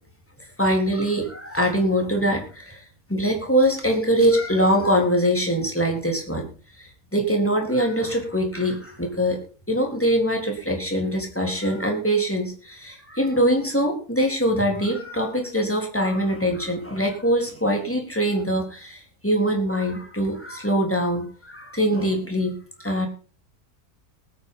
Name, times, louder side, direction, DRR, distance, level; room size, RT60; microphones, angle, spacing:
voice 1, 0.6-2.8 3.1-6.5 6.8-9.4 9.7-22.6 22.8-23.1, equal, 10° left, 2 dB, 3.7 m, -23 dB
19.5 x 9.3 x 3.8 m, 0.38 s
omnidirectional pair, 1.6 m